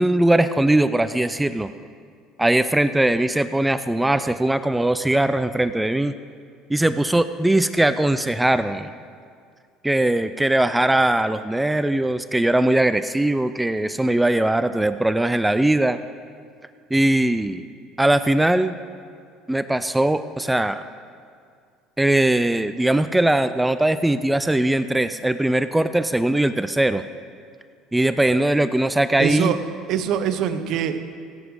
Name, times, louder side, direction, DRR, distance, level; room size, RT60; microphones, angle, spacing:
voice 1, 0.0-1.7 2.4-6.1 6.7-8.9 9.8-16.0 16.9-17.6 18.0-18.8 19.5-20.8 22.0-27.0 27.9-29.5, right 1 dB, 5° right, 12 dB, 0.4 m, -20 dB
voice 2, 29.2-29.6 29.9-31.0, right 9 dB, 60° right, 10 dB, 0.8 m, -23 dB
17.0 x 8.1 x 4.9 m, 2.2 s
supercardioid pair, 110°, 0 cm